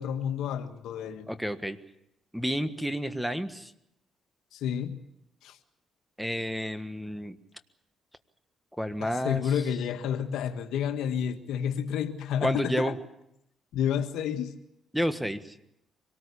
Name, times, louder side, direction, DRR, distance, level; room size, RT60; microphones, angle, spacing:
voice 1, 0.0-1.3 4.5-5.0 5.4-5.6 9.0-12.9 13.7-14.5, left 8 dB, 85° left, 1.6 m, -30 dB
voice 2, 1.3-1.8 2.3-3.7 6.2-7.4 8.8-9.4 12.4-12.9 14.9-15.4, equal, ahead, 1.5 m, -30 dB
25.0 x 19.0 x 8.4 m
cardioid pair, 90°, 0 cm